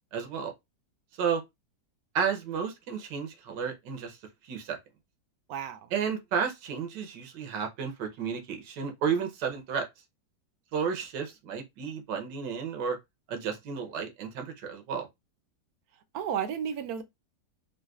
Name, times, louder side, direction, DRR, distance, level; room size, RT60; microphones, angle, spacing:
voice 1, 0.1-0.5 1.2-1.4 2.1-4.2 4.4-4.8 5.9-9.9 10.7-13.0 13.3-15.1, right 6 dB, 85° right, 1.5 m, -32 dB
voice 2, 5.5-5.9 16.1-17.0, right 8 dB, 70° right, 0.9 m, -32 dB
3.9 x 2.5 x 2.3 m
omnidirectional pair, 1.9 m